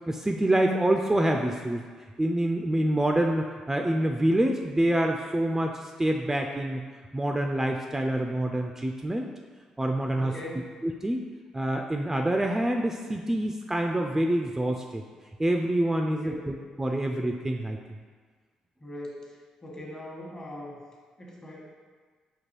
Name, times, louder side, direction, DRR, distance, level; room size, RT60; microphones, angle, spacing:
voice 1, 0.1-1.8 2.2-6.8 7.1-9.3 9.8-10.3 10.8-11.2 11.5-15.0 15.4-17.8, right 1 dB, 15° right, 2 dB, 0.3 m, -26 dB
voice 2, 10.1-10.7 16.0-16.4 18.8-20.8 21.2-21.6, left 1 dB, 35° left, -2 dB, 1.1 m, -41 dB
5.2 x 2.3 x 3.1 m, 1.5 s
hypercardioid pair, 50°, 3 cm